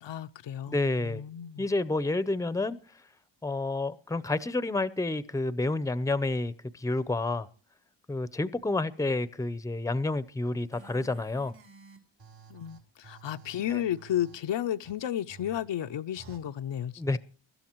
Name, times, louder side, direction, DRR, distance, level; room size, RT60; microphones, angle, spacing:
voice 1, 0.0-1.7 12.5-17.2, left 11 dB, 70° left, 0.8 m, -33 dB
voice 2, 0.7-1.2 1.6-2.8 3.4-7.5 8.1-11.5 13.7-13.8 17.0-17.2, left 2 dB, 5° left, 0.7 m, -29 dB
sound 1, 10.7-14.4 14.8-14.9 15.3-15.6 16.2-16.4, right 4 dB, 75° right, 4.0 m, -52 dB
23.5 x 12.5 x 3.0 m
cardioid pair, 95°, 45 cm